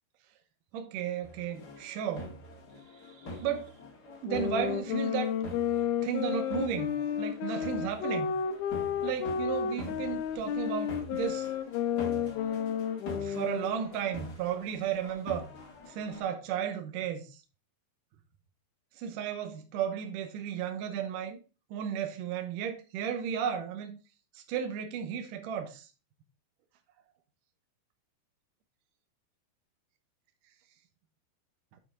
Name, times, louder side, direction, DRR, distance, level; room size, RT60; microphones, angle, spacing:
voice 1, 0.7-2.3 3.4-3.7 4.2-5.3 6.0-8.4 9.0-11.5 13.2-15.5 15.9-17.2 19.0-21.4 21.7-24.0 24.4-25.9, right 8 dB, 75° right, 2.0 m, -34 dB
sound 1, 1.2-16.2, left 1 dB, 45° left, 1.3 m, -45 dB
sound 2, 4.2-13.9, left 8 dB, 80° left, 2.4 m, -32 dB
7.5 x 4.9 x 3.7 m
omnidirectional pair, 4.7 m